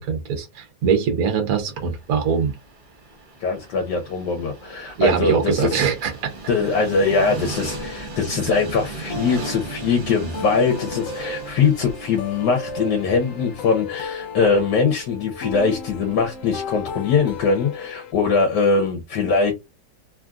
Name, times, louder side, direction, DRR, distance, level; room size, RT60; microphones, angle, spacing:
voice 1, 0.0-2.5 5.0-6.3, right 6 dB, 60° right, 1.2 m, -22 dB
Train, 1.6-17.6, right 4 dB, 35° right, 0.9 m, -38 dB
voice 2, 3.4-5.9 6.5-19.5, left 5 dB, 80° left, 1.4 m, -22 dB
sound 1, 7.7-18.1, left 4 dB, 65° left, 0.8 m, -35 dB
3.3 x 2.5 x 2.3 m
omnidirectional pair, 1.8 m